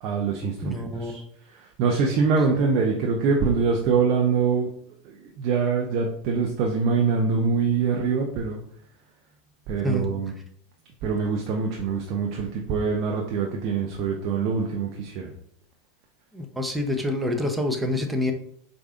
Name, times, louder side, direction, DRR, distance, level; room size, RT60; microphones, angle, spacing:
voice 1, 0.0-1.2 1.5-4.7 5.0-8.6 9.7-10.3 11.0-15.3, right 5 dB, 55° right, 0 dB, 0.5 m, -24 dB
voice 2, 0.6-1.2 9.8-10.1 16.3-18.3, left 1 dB, 10° right, 5 dB, 0.6 m, -27 dB
4.7 x 2.5 x 2.4 m, 0.65 s
hypercardioid pair, 95°, 0 cm